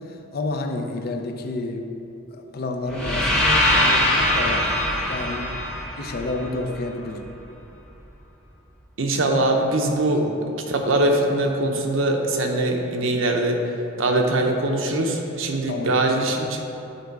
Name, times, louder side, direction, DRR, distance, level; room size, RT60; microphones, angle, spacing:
voice 1, 0.0-1.9 2.3-4.7 5.1-5.5 6.0-7.3 10.2-10.4 15.6-16.0, left 2 dB, 50° left, 4 dB, 0.5 m, -30 dB
sound 1, 2.9-6.9, left 1 dB, 5° left, 0.9 m, -22 dB
voice 2, 9.0-10.3 10.7-13.6 14.0-16.7, right 1 dB, 70° right, 2 dB, 0.8 m, -22 dB
9.1 x 3.8 x 4.6 m, 2.8 s
head